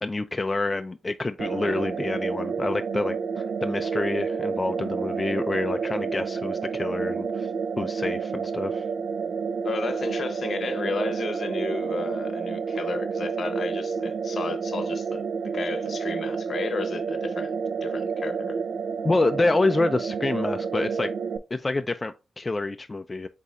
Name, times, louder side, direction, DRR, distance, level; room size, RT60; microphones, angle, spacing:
voice 1, 0.0-7.5 7.8-8.9 19.0-21.1 21.5-23.3, left 2 dB, 25° left, 0.3 m, -27 dB
sound 1, 1.4-21.4, right 5 dB, 80° right, 0.4 m, -29 dB
voice 2, 9.6-18.6, left 4 dB, 60° left, 0.8 m, -33 dB
8.0 x 2.7 x 2.4 m
cardioid pair, 80°, 0 cm